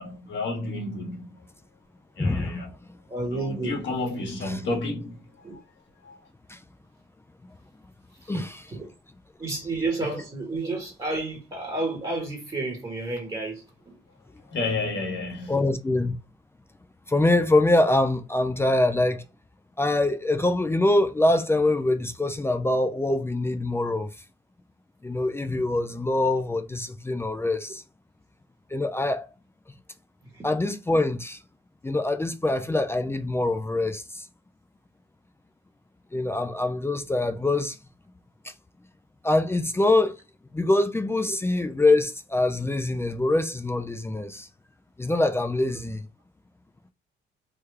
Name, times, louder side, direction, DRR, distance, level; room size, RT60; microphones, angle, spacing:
voice 1, 0.0-1.4 2.2-2.7 3.3-5.6 6.0-6.2 14.5-15.5, left 2 dB, 65° left, 1.4 m, -31 dB
voice 2, 2.2-2.6 6.5-6.6 8.3-8.6 15.5-16.2 17.1-19.2 19.8-24.1 25.0-27.8 28.7-29.3 30.4-31.4 31.8-34.2 36.1-37.8 39.2-40.2 40.5-44.5 45.0-46.0, left 2 dB, 10° left, 0.3 m, -24 dB
voice 3, 3.1-3.8 5.4-5.6 8.3-8.9 9.4-14.0 30.3-30.5 41.3-41.4, right 2 dB, 25° right, 1.1 m, -31 dB
3.3 x 2.3 x 3.2 m
cardioid pair, 90°, 20 cm